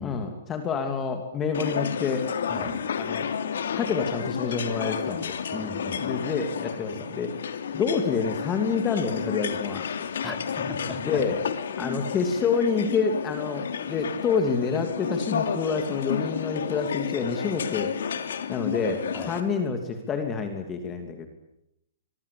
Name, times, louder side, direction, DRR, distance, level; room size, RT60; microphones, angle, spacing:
voice 1, 0.0-2.3 3.0-3.3 3.7-5.3 6.0-7.4 7.7-9.8 11.0-11.4 11.8-17.9 18.5-21.3, left 5 dB, 15° left, 5 dB, 2.8 m, -28 dB
sound 1, 1.5-19.4, left 7 dB, 75° left, 3.1 m, -31 dB
voice 2, 2.5-2.8 5.5-6.1 10.2-11.3 11.8-12.0 19.1-19.4, left 1 dB, ahead, 3 dB, 3.3 m, -37 dB
25.0 x 23.0 x 8.6 m, 0.82 s
hypercardioid pair, 160°, 0 cm